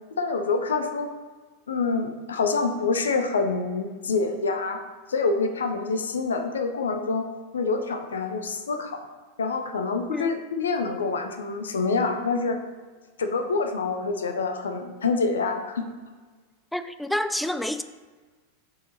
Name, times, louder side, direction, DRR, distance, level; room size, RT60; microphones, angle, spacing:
voice 1, 0.2-1.1 1.7-4.8 5.1-7.3 7.5-9.1 9.4-12.6 13.2-15.9, left 4 dB, 70° left, 6 dB, 0.7 m, -26 dB
voice 2, 10.1-10.4 16.7-17.8, left 1 dB, 5° left, 10 dB, 0.3 m, -28 dB
5.4 x 4.5 x 4.5 m, 1.4 s
figure-of-eight pair, 90°, 0 cm